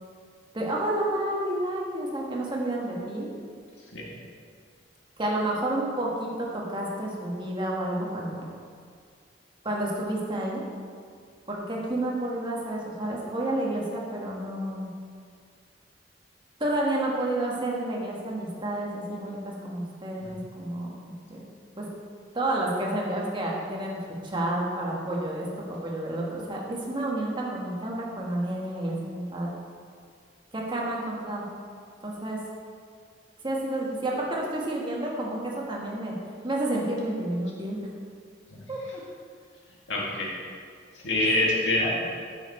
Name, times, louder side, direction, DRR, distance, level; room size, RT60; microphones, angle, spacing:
voice 1, 0.5-3.3 5.2-8.5 9.6-10.6 11.5-14.9 16.6-21.4 21.8-21.9 22.3-24.0 24.2-29.5 30.5-31.4 32.0-32.4 33.4-36.2 36.4-37.8 38.7-38.8 41.2-41.4, right 1 dB, 25° right, -3 dB, 1.3 m, -30 dB
voice 2, 39.9-40.3 40.9-42.1, left 1 dB, 85° left, -3 dB, 1.8 m, -26 dB
8.8 x 6.4 x 4.2 m, 2.1 s
head